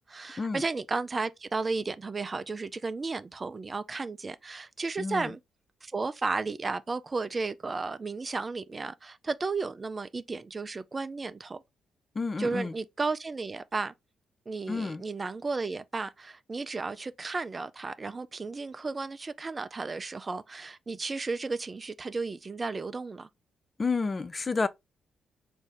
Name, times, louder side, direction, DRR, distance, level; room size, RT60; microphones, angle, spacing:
voice 1, 0.0-5.4 5.8-11.6 12.4-13.9 14.5-23.3, right 3 dB, 35° right, 0.4 m, -33 dB
voice 2, 5.0-5.3 12.1-12.7 14.7-15.0 23.8-24.7, left 4 dB, 35° left, 0.4 m, -30 dB
4.0 x 2.6 x 3.6 m
hypercardioid pair, 40°, 0 cm